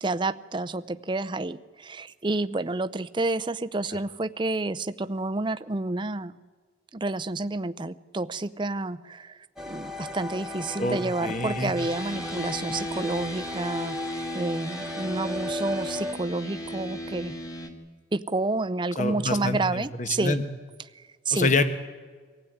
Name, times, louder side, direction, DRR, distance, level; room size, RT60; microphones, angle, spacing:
voice 1, 0.0-6.3 6.9-9.4 9.6-14.0 14.3-17.4 18.1-20.4 21.0-21.5, right 2 dB, 25° right, 12 dB, 0.6 m, -29 dB
sound 1, 9.6-16.1, left 2 dB, 5° right, 1.3 m, -36 dB
voice 2, 10.8-11.7 19.0-20.4 21.3-21.6, left 3 dB, 40° left, 10 dB, 1.4 m, -26 dB
sound 2, 11.8-17.7, equal, 20° left, 2.2 m, -36 dB
24.0 x 16.0 x 9.4 m, 1.5 s
head